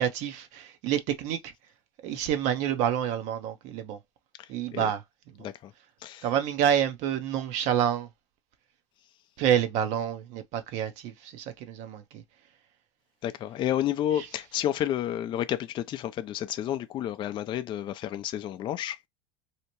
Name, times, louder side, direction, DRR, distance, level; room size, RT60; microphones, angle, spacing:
voice 1, 0.0-1.5 2.0-4.0 4.5-5.0 6.2-8.1 9.4-12.2 14.2-14.3, right 9 dB, 55° right, 0.6 m, -28 dB
voice 2, 5.4-5.7 6.0-6.3 13.2-19.1, left 11 dB, 35° left, 0.4 m, -30 dB
2.8 x 2.1 x 2.9 m
hypercardioid pair, 100°, 15 cm